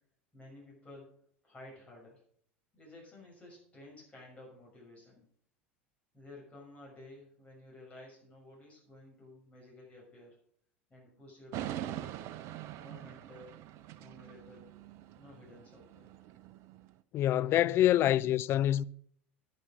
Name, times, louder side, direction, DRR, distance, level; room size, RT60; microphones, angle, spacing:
voice 1, 0.3-1.1 1.4-2.2 2.7-5.3 6.1-10.4 10.9-12.2 12.7-13.6 13.9-14.7 15.1-16.0, left 1 dB, 20° left, 6.5 m, -53 dB
sound 1, 11.5-16.9, right 12 dB, 45° right, 0.7 m, -43 dB
voice 2, 17.1-18.8, left 12 dB, 40° left, 0.4 m, -26 dB
10.5 x 8.5 x 6.1 m
figure-of-eight pair, 75°, 6 cm